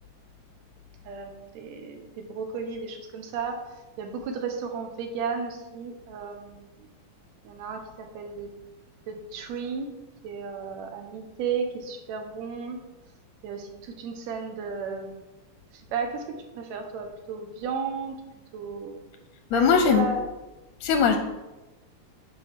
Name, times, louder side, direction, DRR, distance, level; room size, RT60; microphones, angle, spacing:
voice 1, 1.1-6.9 7.4-8.5 9.1-9.9 10.2-12.8 13.4-15.1 15.7-18.2 18.5-19.0 19.5-20.3, right 5 dB, 70° right, 5 dB, 2.1 m, -34 dB
voice 2, 19.5-20.1 20.8-21.2, left 6 dB, 75° left, 6 dB, 1.7 m, -20 dB
9.1 x 4.5 x 5.9 m, 1.1 s
omnidirectional pair, 3.5 m